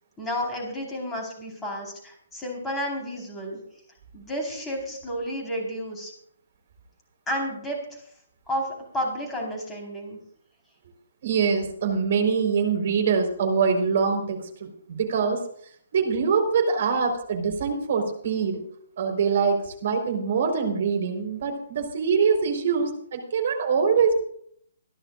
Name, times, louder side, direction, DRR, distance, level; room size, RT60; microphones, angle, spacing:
voice 1, 0.2-3.6 4.1-6.1 7.3-8.0 8.5-10.2, equal, 10° left, 0 dB, 4.5 m, -31 dB
voice 2, 11.2-15.4 15.9-18.6 19.0-24.2, right 5 dB, 50° right, 4 dB, 4.4 m, -24 dB
27.5 x 11.5 x 2.6 m, 0.65 s
figure-of-eight pair, 130°, 0 cm